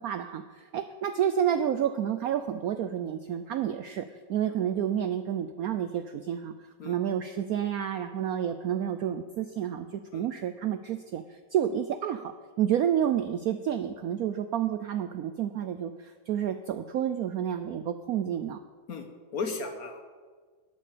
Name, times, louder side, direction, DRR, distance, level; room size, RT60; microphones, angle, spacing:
voice 1, 0.0-6.5 6.8-12.3 12.6-18.6, right 9 dB, 70° right, 9 dB, 0.8 m, -30 dB
voice 2, 18.9-20.0, left 4 dB, 55° left, 6 dB, 1.4 m, -35 dB
12.0 x 8.8 x 6.7 m, 1.5 s
omnidirectional pair, 2.0 m